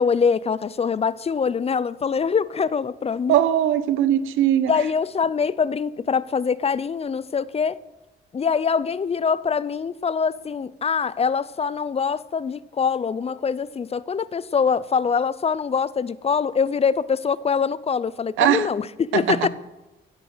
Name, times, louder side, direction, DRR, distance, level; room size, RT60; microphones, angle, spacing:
voice 1, 0.0-3.4 4.7-7.8 8.3-19.5, left 6 dB, 30° left, 0.5 m, -24 dB
voice 2, 3.3-4.7 18.4-18.7 19.1-19.5, right 11 dB, 85° right, 0.8 m, -20 dB
15.5 x 8.3 x 6.2 m
cardioid pair, 90°, 20 cm